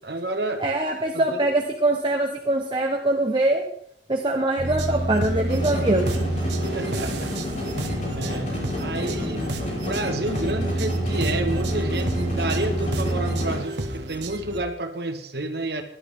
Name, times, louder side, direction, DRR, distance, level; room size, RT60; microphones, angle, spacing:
voice 1, 0.0-0.6 1.1-1.5 6.7-7.3 8.1-8.5 8.8-9.5 9.8-15.8, right 2 dB, 65° right, 6 dB, 1.7 m, -30 dB
voice 2, 0.6-3.7 4.1-6.1, right 2 dB, 30° right, 1 dB, 1.2 m, -23 dB
sound 1, 4.6-14.6, right 2 dB, 85° right, 1.4 m, -28 dB
sound 2, 5.5-13.6, left 1 dB, 40° left, 5.6 m, -30 dB
17.0 x 12.0 x 3.7 m, 0.68 s
head